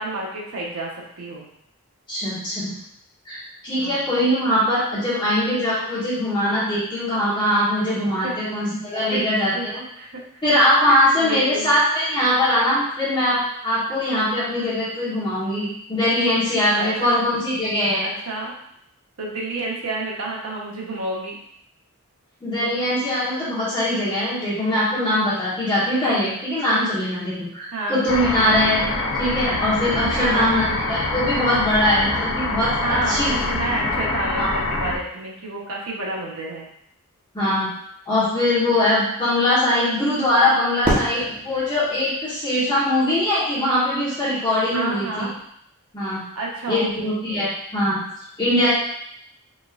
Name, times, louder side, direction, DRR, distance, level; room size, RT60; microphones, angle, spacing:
voice 1, 0.0-1.5 3.7-4.0 5.1-5.2 8.2-8.4 9.1-9.3 9.5-9.7 10.0-10.2 10.9-11.7 16.8-17.2 18.0-18.5 19.2-21.3 27.7-28.0 28.4-29.0 30.1-30.5 32.8-36.7 44.7-45.3 46.3-47.5, right 2 dB, 70° right, -2 dB, 1.0 m, -30 dB
voice 2, 2.1-2.7 3.2-3.4 3.6-9.8 10.4-18.1 22.4-28.8 29.1-33.3 34.4-34.5 37.3-37.7 38.0-45.3 45.9-46.2 46.7-48.0 48.4-48.7, left 1 dB, 20° left, -11 dB, 1.3 m, -21 dB
sound 1, 28.1-35.0, left 2 dB, 75° left, 0.6 m, -25 dB
Fireworks, 40.8-43.0, right 1 dB, 25° right, 1.1 m, -28 dB
4.5 x 3.2 x 2.5 m, 0.73 s
head